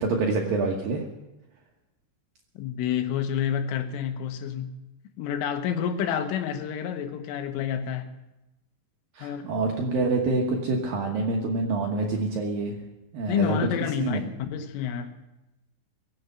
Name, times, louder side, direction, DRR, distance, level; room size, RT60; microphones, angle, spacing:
voice 1, 0.0-1.0 9.1-12.8 13.1-13.6 14.0-14.2, right 3 dB, 70° right, 0 dB, 2.2 m, -26 dB
voice 2, 2.6-4.7 5.2-8.1 9.2-9.5 13.3-14.2 14.5-15.2, left 8 dB, 85° left, 8 dB, 3.6 m, -29 dB
22.5 x 7.9 x 6.7 m, 0.97 s
omnidirectional pair, 5.7 m